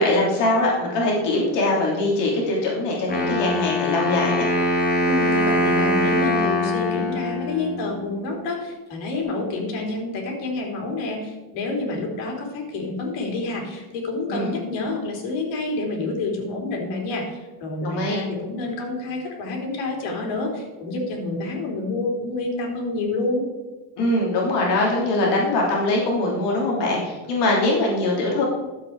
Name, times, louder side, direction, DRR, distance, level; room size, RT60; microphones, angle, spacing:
voice 1, 0.0-4.5 14.3-14.5 17.8-18.2 24.0-28.4, left 2 dB, 65° left, -3 dB, 3.2 m, -22 dB
Wind instrument woodwind instrument, 3.1-8.1, left 1 dB, 20° left, 2.8 m, -22 dB
voice 2, 5.0-23.4, left 2 dB, 85° left, 0 dB, 3.6 m, -28 dB
12.5 x 7.9 x 4.7 m, 1.2 s
cardioid pair, 165°, 45 cm